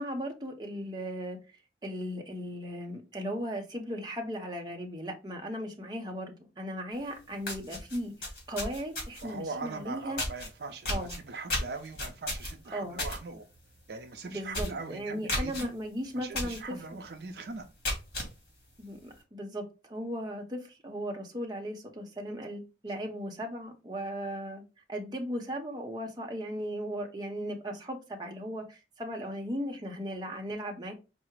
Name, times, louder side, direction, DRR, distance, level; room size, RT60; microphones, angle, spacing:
voice 1, 0.0-1.4 1.8-10.2 10.9-11.1 12.7-13.0 14.3-16.8 18.8-24.6 24.9-30.9, equal, 25° right, 0.7 m, -37 dB
sound 1, 7.0-7.1 7.4-9.3 10.2-10.5 10.8-13.2 13.5-13.8 14.1-14.2 14.5-14.8 15.3-15.6 16.3-16.6 17.0-17.1 17.6-18.3, left 1 dB, 55° left, 2.0 m, -33 dB
voice 2, 9.2-13.5 13.9-15.7 16.2-17.7, right 3 dB, 65° right, 0.5 m, -41 dB
4.7 x 2.0 x 4.5 m
head